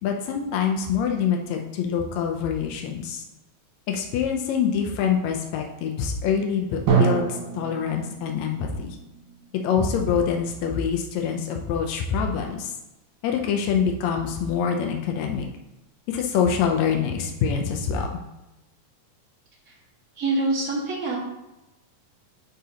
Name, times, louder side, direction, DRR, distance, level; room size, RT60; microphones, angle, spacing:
voice 1, 0.0-3.2 3.9-9.0 9.6-12.7 13.2-15.4 16.1-18.2, left 7 dB, 85° left, 2 dB, 1.6 m, -25 dB
Drum, 6.9-10.6, right 7 dB, 85° right, 3.1 m, -27 dB
voice 2, 20.2-21.2, right 2 dB, 40° right, -5 dB, 1.2 m, -25 dB
10.0 x 3.8 x 2.8 m, 0.95 s
omnidirectional pair, 3.9 m